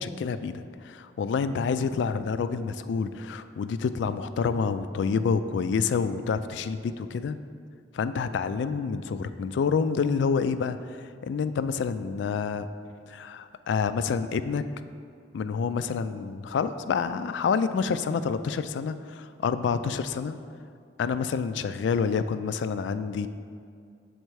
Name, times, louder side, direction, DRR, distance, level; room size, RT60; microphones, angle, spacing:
voice 1, 0.0-7.4 7.9-10.8 11.2-12.7 13.1-14.6 15.3-20.4 21.0-23.3, left 5 dB, 80° left, 12 dB, 0.3 m, -28 dB
6.7 x 4.3 x 4.7 m, 2.3 s
head